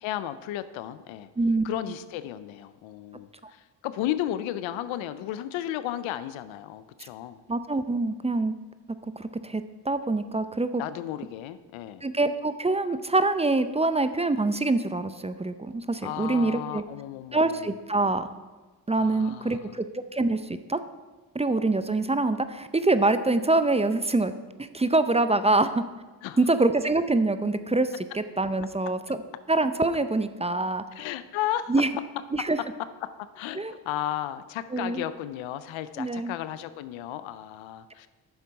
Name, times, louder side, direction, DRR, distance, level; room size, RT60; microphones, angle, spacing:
voice 1, 0.0-1.3 1.6-7.4 10.8-12.0 16.0-17.7 19.0-19.7 26.2-26.4 31.0-31.7 33.0-38.1, left 12 dB, 90° left, 13 dB, 0.6 m, -34 dB
voice 2, 7.5-8.5 9.2-10.8 12.0-16.8 17.3-18.3 18.9-20.8 21.3-24.3 24.6-25.8 26.4-29.2 29.5-30.8 31.7-31.9 32.3-32.6 33.5-33.7 34.7-35.0 36.0-36.4, right 2 dB, 15° right, 11 dB, 0.5 m, -25 dB
9.4 x 7.0 x 4.8 m, 1.3 s
supercardioid pair, 65°, 45 cm